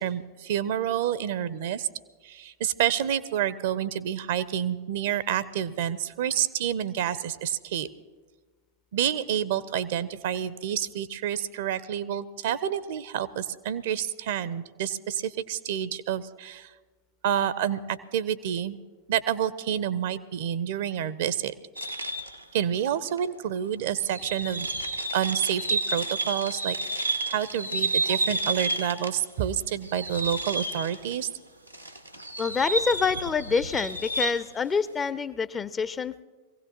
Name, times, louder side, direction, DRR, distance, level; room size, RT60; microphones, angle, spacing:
voice 1, 0.0-1.9 2.2-7.9 8.9-16.7 17.2-18.8 19.1-21.5 22.5-24.7 25.1-31.3, right 10 dB, 55° right, 16 dB, 0.5 m, -29 dB
sound 1, 21.8-22.4 23.2-23.3 24.0-29.3 29.6-31.2 31.7-34.5, right 2 dB, 90° right, 0.7 m, -30 dB
voice 2, 32.4-36.2, left 5 dB, 20° left, 16 dB, 0.4 m, -27 dB
23.0 x 16.5 x 2.9 m, 1.4 s
figure-of-eight pair, 90°, 0 cm